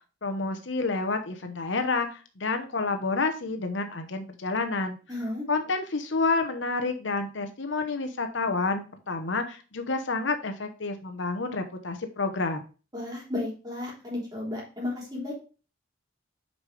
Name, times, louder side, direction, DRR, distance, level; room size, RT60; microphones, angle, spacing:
voice 1, 0.2-5.0 5.5-12.6, left 3 dB, 70° left, 7 dB, 1.0 m, -29 dB
voice 2, 5.1-5.5 12.9-15.3, left 2 dB, 20° right, -4 dB, 3.6 m, -33 dB
7.9 x 5.4 x 3.3 m, 0.34 s
head